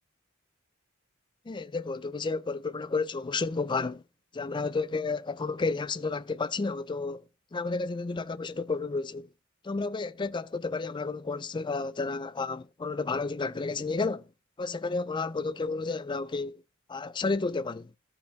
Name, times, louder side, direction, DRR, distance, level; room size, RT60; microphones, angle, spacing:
voice 1, 1.5-4.0 4.3-7.2 7.5-9.3 9.6-14.3 14.6-16.6 16.9-17.9, left 3 dB, 20° left, 0.4 m, -31 dB
15.0 x 5.8 x 3.1 m
head